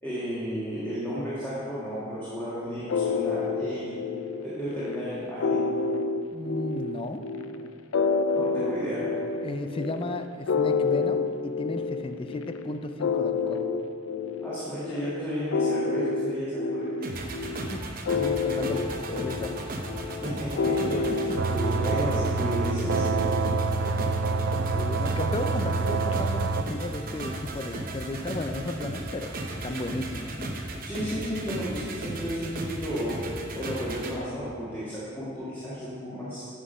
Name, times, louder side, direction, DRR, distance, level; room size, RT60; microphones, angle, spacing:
voice 1, 0.0-4.0 4.4-5.6 8.3-9.1 14.4-17.3 20.2-21.3 21.5-23.0 30.8-33.2 33.5-36.5, equal, 10° left, -11 dB, 1.9 m, -33 dB
sound 1, 2.9-21.7, left 4 dB, 90° left, 0.5 m, -29 dB
voice 2, 6.3-7.3 9.4-13.7 17.7-19.6 20.9-21.6 24.1-24.3 24.7-30.6, left 1 dB, 25° left, 8 dB, 0.4 m, -35 dB
sound 2, 17.0-34.2, right 1 dB, 45° right, 0.9 m, -35 dB
sound 3, 21.4-26.6, right 4 dB, 65° right, 0.4 m, -27 dB
9.7 x 6.0 x 5.3 m, 2.5 s
head